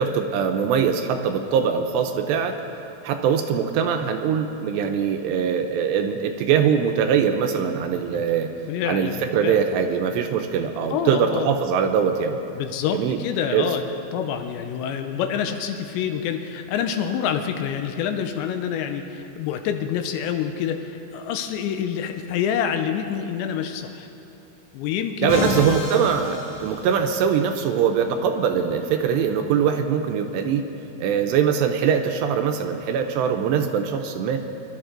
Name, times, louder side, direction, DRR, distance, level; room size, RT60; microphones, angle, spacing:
voice 1, 0.0-2.6 3.0-8.5 8.9-12.4 12.9-13.2 13.5-13.7 25.2-30.7 31.0-34.4, right 7 dB, 80° right, 5 dB, 2.7 m, -22 dB
voice 2, 8.7-9.6 10.9-11.5 12.5-13.8 14.1-24.1 24.7-25.6, left 8 dB, 85° left, 6 dB, 2.9 m, -27 dB
Musical instrument, 25.3-27.4, left 2 dB, 45° left, 2.5 m, -30 dB
24.5 x 12.0 x 3.8 m, 2.8 s
omnidirectional pair, 5.3 m